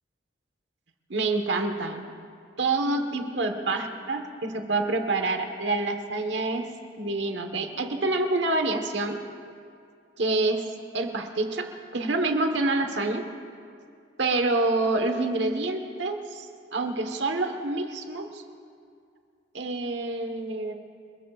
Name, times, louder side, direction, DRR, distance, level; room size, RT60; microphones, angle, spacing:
voice 1, 1.1-2.1 2.6-6.7 7.0-9.2 10.2-10.6 10.9-11.7 11.9-13.3 14.2-16.5 16.7-18.4 19.5-20.7, right 2 dB, 75° right, 5 dB, 1.4 m, -27 dB
27.0 x 21.0 x 2.5 m, 2.3 s
head